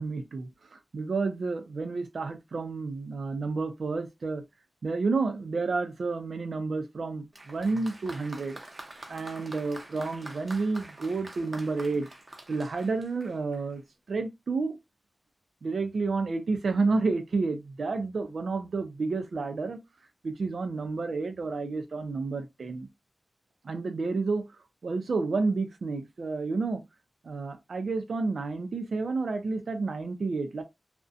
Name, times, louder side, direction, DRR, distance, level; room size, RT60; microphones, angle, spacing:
voice 1, 0.0-4.4 4.8-8.6 9.1-12.1 12.5-13.8 14.1-14.8 15.6-19.8 20.2-22.9 23.6-24.5 24.8-26.8 27.2-30.6, right 3 dB, 85° right, 0.4 m, -30 dB
Applause, 7.3-13.8, right 2 dB, 40° right, 0.6 m, -46 dB
2.4 x 2.1 x 2.5 m
wide cardioid pair, 80°, 0 cm